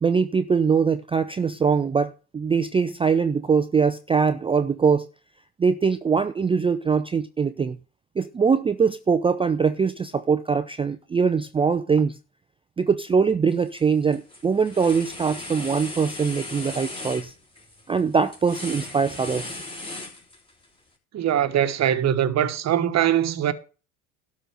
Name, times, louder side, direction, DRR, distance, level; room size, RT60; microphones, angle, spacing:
voice 1, 0.0-5.1 5.6-7.8 8.2-12.1 12.8-17.3 17.9-19.6, right 5 dB, 15° right, 0.4 m, -22 dB
sound 1, 13.5-13.8 14.1-20.6, left 2 dB, 10° left, 3.4 m, -37 dB
voice 2, 21.1-23.5, right 10 dB, 35° right, 1.2 m, -22 dB
12.0 x 4.2 x 7.6 m
hypercardioid pair, 80°, 44 cm